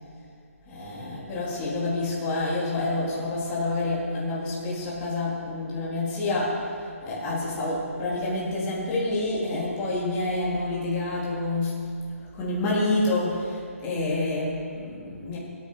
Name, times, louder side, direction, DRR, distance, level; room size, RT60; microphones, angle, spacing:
voice 1, 0.7-11.8 12.3-15.4, left 2 dB, 20° left, -7 dB, 3.8 m, -28 dB
23.0 x 9.7 x 5.8 m, 2.3 s
hypercardioid pair, 150°, 8 cm